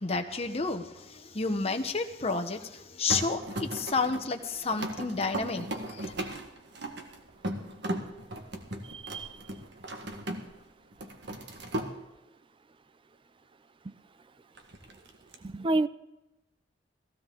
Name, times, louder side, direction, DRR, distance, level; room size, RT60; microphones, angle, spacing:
voice 1, 0.0-6.1, left 4 dB, 35° left, 5 dB, 1.1 m, -31 dB
sound 1, 3.1-10.6 10.9-11.9 14.6-15.3, right 1 dB, 65° right, 1.6 m, -37 dB
voice 2, 8.8-9.5 13.8-13.9 15.4-15.9, right 2 dB, 25° right, 15 dB, 0.4 m, -30 dB
16.0 x 15.5 x 3.8 m, 0.94 s
head